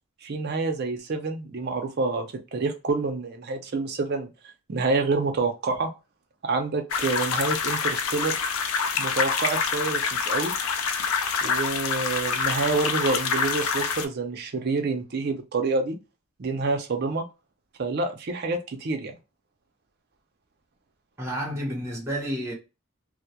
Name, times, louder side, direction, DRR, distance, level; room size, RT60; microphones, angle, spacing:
voice 1, 0.2-4.3 4.7-5.9 6.4-8.4 8.9-10.5 11.4-16.0 16.4-17.3 17.8-19.1, right 3 dB, 50° right, 0.5 m, -27 dB
sound 1, 6.9-14.1, left 5 dB, 85° left, 0.4 m, -26 dB
voice 2, 21.2-22.5, equal, 15° right, 0.7 m, -30 dB
2.2 x 2.0 x 2.7 m
head